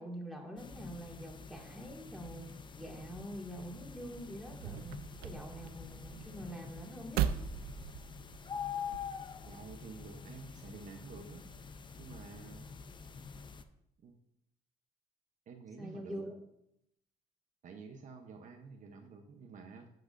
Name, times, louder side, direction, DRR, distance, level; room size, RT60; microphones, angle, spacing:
voice 1, 0.0-7.2 15.8-16.4, equal, ahead, -1 dB, 2.1 m, -45 dB
sound 1, 0.6-13.6, left 6 dB, 30° left, 0.5 m, -46 dB
sound 2, 4.1-9.2, right 9 dB, 85° right, 0.4 m, -39 dB
voice 2, 9.4-11.6 12.0-12.7 14.0-14.1 15.5-16.2 17.6-19.9, right 5 dB, 60° right, 4 dB, 0.8 m, -50 dB
11.5 x 6.0 x 2.6 m, 0.78 s
cardioid pair, 90°, 15 cm